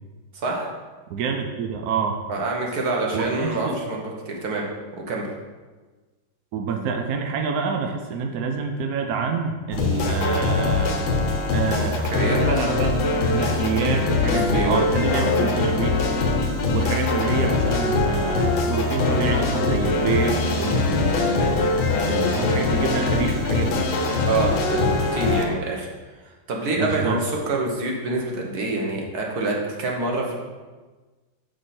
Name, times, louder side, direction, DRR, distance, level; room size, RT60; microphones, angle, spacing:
voice 1, 0.3-0.7 2.3-4.7 5.1-5.3 12.1-12.4 14.2-14.8 15.1-15.3 24.3-25.9 26.2-30.4, right 2 dB, 55° right, -1 dB, 1.6 m, -26 dB
voice 2, 1.1-2.2 3.1-3.8 6.5-11.1 11.5-13.0 13.3-16.0 16.6-23.9 26.8-27.2, right 5 dB, 75° right, 4 dB, 0.8 m, -27 dB
sound 1, 9.7-25.5, left 3 dB, 80° left, 1.8 m, -22 dB
6.4 x 6.3 x 4.3 m, 1.3 s
omnidirectional pair, 2.2 m